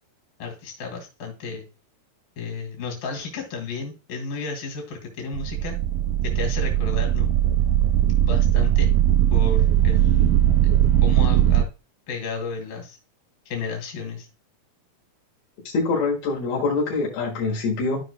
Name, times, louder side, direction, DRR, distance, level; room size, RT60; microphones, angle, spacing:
voice 1, 0.4-1.7 2.4-5.8 6.2-7.3 8.2-8.9 9.3-11.7 12.1-13.0 13.5-14.3, left 4 dB, 70° left, 1 dB, 3.8 m, -33 dB
sound 1, 5.3-11.6, right 11 dB, 80° right, 2.0 m, -19 dB
voice 2, 15.7-18.0, left 3 dB, 90° left, -2 dB, 3.6 m, -24 dB
14.0 x 5.1 x 2.2 m, 0.31 s
omnidirectional pair, 4.2 m